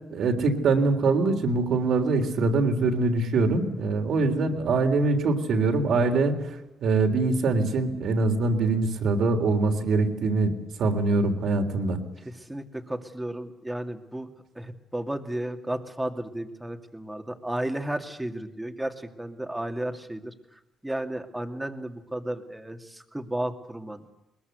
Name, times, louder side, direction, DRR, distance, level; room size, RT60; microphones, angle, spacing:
voice 1, 0.1-6.4 6.8-10.5 10.8-12.0, right 3 dB, 65° right, 4 dB, 3.6 m, -23 dB
voice 2, 12.3-24.1, right 1 dB, 10° right, 6 dB, 2.3 m, -33 dB
21.5 x 20.5 x 8.2 m, 0.96 s
cardioid pair, 90°, 0 cm